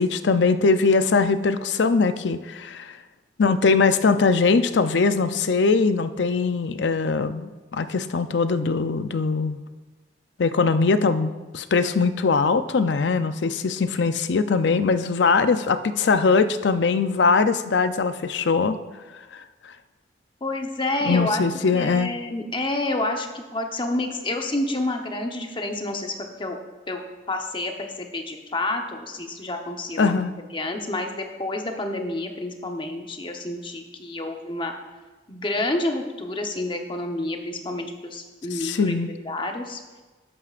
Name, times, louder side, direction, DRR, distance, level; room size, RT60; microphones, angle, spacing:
voice 1, 0.0-3.0 3.4-9.6 10.4-18.8 19.3-19.7 21.0-22.1 30.0-30.3 38.5-39.1, left 4 dB, 80° left, 11 dB, 0.5 m, -21 dB
voice 2, 20.4-21.4 21.7-26.6 26.9-27.0 27.3-30.2 30.5-34.7 35.3-39.0 39.2-39.8, left 2 dB, 30° left, 3 dB, 0.9 m, -29 dB
13.5 x 11.0 x 2.5 m, 1.2 s
head